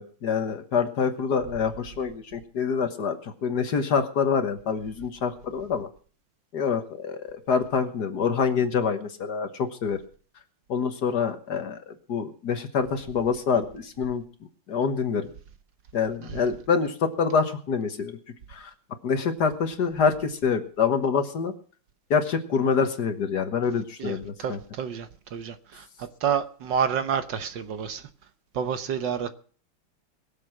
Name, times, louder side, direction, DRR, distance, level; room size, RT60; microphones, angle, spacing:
voice 1, 0.0-5.9 6.5-10.0 10.7-14.2 14.7-15.3 15.9-18.2 18.5-18.7 19.0-21.5 22.1-24.6, left 6 dB, 55° left, 1.7 m, -26 dB
voice 2, 24.0-28.1 28.5-29.3, right 7 dB, 65° right, 1.6 m, -29 dB
22.0 x 7.6 x 6.0 m
omnidirectional pair, 2.3 m